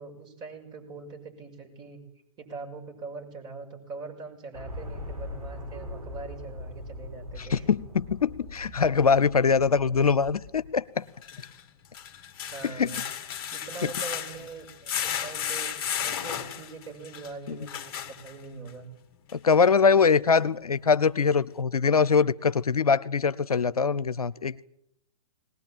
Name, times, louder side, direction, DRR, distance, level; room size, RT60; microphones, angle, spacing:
voice 1, 0.0-2.0 2.4-7.7 12.4-13.0 13.5-15.7 16.0-18.9, right 4 dB, 25° right, 6.2 m, -42 dB
sound 1, 4.5-10.8, left 1 dB, 80° right, 6.0 m, -41 dB
voice 2, 7.4-11.1 12.6-12.9 13.8-13.9 17.5-17.6 19.3-24.7, left 5 dB, 75° left, 0.8 m, -23 dB
sound 2, 8.6-8.7 11.1-18.7 19.3-19.4 19.8-19.9, left 9 dB, 35° left, 1.8 m, -34 dB
20.5 x 19.5 x 9.0 m
figure-of-eight pair, 125°, 19 cm